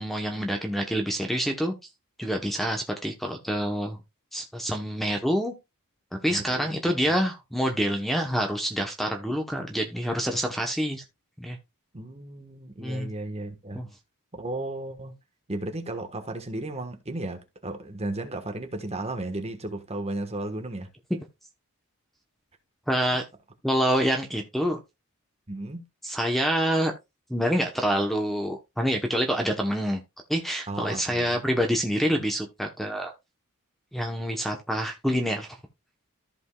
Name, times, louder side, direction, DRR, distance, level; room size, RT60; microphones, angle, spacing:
voice 1, 0.0-1.7 2.2-4.0 4.3-5.5 6.2-11.0 11.4-11.6 12.8-13.1 13.7-13.9 22.9-23.2 23.6-24.8 26.0-26.9 27.3-30.0 30.3-33.1 33.9-35.6, equal, ahead, 0.9 m, -27 dB
voice 2, 6.3-6.8 7.1-7.2 11.9-13.8 14.3-15.1 15.5-20.9 23.1-23.2 25.5-25.8 30.7-31.4, right 2 dB, 30° right, 1.3 m, -34 dB
14.0 x 5.3 x 2.3 m
head